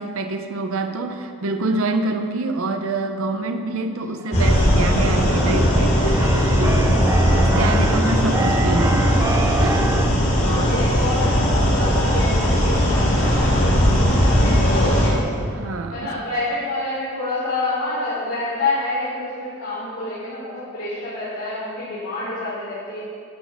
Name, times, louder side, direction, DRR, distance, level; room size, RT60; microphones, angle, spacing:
voice 1, 0.0-7.0 7.4-9.2 9.6-10.0 10.4-10.7 15.5-16.1, right 2 dB, 70° right, 6 dB, 0.7 m, -26 dB
Keyboard (musical), 4.2-10.1, right 3 dB, 15° right, 0.4 m, -28 dB
sound 1, 4.3-15.1, equal, 35° left, 2.7 m, -18 dB
voice 2, 10.3-13.7 14.0-15.3 15.9-23.0, left 2 dB, 85° left, -10 dB, 3.2 m, -27 dB
12.0 x 6.3 x 6.9 m, 2.3 s
head